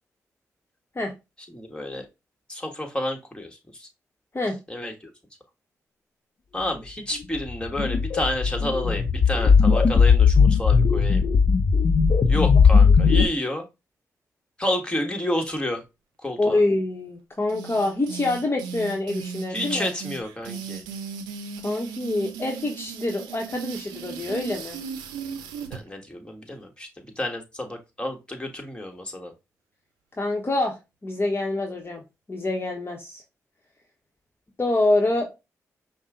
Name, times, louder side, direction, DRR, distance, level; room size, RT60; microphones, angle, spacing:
voice 1, 1.5-2.0 2.5-3.9 4.7-5.1 6.5-11.2 12.3-13.7 14.6-15.8 16.2-16.6 19.5-20.8 25.7-29.3, left 1 dB, 15° left, 2 dB, 1.5 m, -30 dB
sound 1, 7.5-13.2, left 5 dB, 55° left, 0.7 m, -18 dB
voice 2, 16.4-19.9 21.6-24.8 30.2-30.8 31.0-32.0 32.3-33.2 34.6-35.3, left 2 dB, 35° left, 1 dB, 1.1 m, -26 dB
sound 2, 17.5-25.8, right 6 dB, 90° right, 0.5 m, -36 dB
5.4 x 2.2 x 3.7 m, 0.24 s
supercardioid pair, 45°, 7 cm